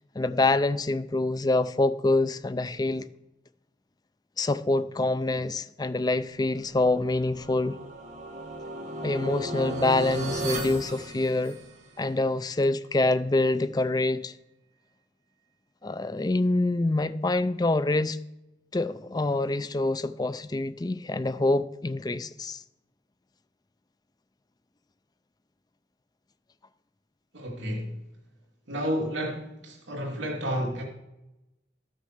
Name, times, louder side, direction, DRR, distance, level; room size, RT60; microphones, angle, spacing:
voice 1, 0.2-3.1 4.4-7.8 9.0-11.6 12.0-14.3 15.8-18.2 18.7-22.6, left 2 dB, 20° left, 0.4 m, -26 dB
sound 1, 6.7-11.9, right 1 dB, 40° right, 2.2 m, -35 dB
voice 2, 27.3-27.9 28.7-30.8, equal, 90° right, 2.8 m, -31 dB
12.5 x 6.5 x 6.6 m
head